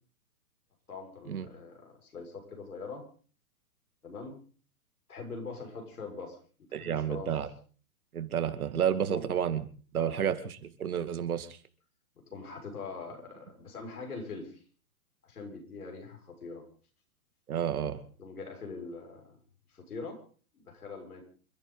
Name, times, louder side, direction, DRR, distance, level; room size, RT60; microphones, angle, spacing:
voice 1, 0.9-3.0 4.0-4.3 5.1-6.4 6.7-7.3 9.1-9.2 10.0-10.2 12.3-14.6 15.2-16.6 18.2-19.4 19.7-20.2 20.5-21.2, left 4 dB, 90° left, 2 dB, 6.5 m, -42 dB
voice 2, 6.7-7.5 8.1-9.6 9.9-11.6 17.5-18.0, right 9 dB, 80° right, 8 dB, 2.5 m, -30 dB
28.0 x 11.5 x 4.0 m, 0.42 s
hypercardioid pair, 130°, 43 cm